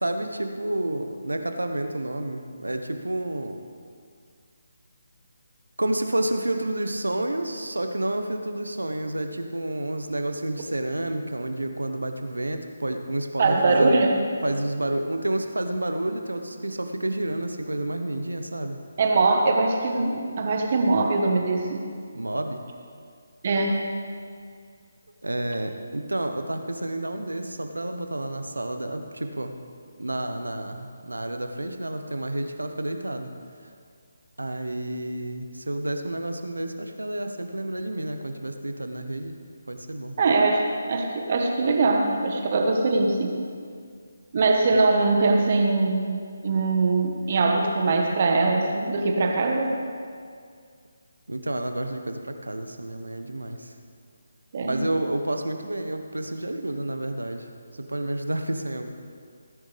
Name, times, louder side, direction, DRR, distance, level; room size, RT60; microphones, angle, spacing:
voice 1, 0.0-3.6 5.8-14.0 14.4-18.8 22.1-22.6 25.2-29.5 30.0-33.3 34.4-39.4 39.7-40.1 51.3-53.7 54.6-57.5 57.7-58.9, right 1 dB, 85° right, 6 dB, 1.1 m, -30 dB
voice 2, 13.4-14.2 19.0-21.9 23.4-23.8 40.2-43.4 44.3-49.7 54.5-54.8, right 3 dB, 45° right, 2 dB, 1.4 m, -22 dB
17.0 x 10.0 x 3.5 m, 2.2 s
figure-of-eight pair, 150°, 0 cm